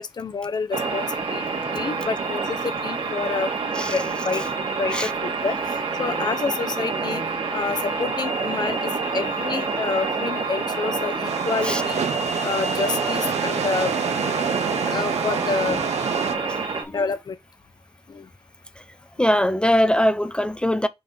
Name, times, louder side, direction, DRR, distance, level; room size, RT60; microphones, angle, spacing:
voice 1, 0.0-1.4 1.7-3.5 3.8-4.4 4.8-5.6 6.0-7.2 7.5-12.0 12.4-13.9 14.9-15.8 16.9-17.4 18.1-18.3 19.2-19.3, left 4 dB, 40° left, 0.7 m, -28 dB
sound 1, 0.7-16.8, right 4 dB, 50° right, 1.6 m, -27 dB
sound 2, 11.3-16.4, right 7 dB, 75° right, 0.8 m, -28 dB
voice 2, 14.4-14.8 15.7-15.8 16.4-17.0 19.2-20.9, equal, 10° left, 0.3 m, -22 dB
5.4 x 3.5 x 5.4 m
wide cardioid pair, 155°, 11 cm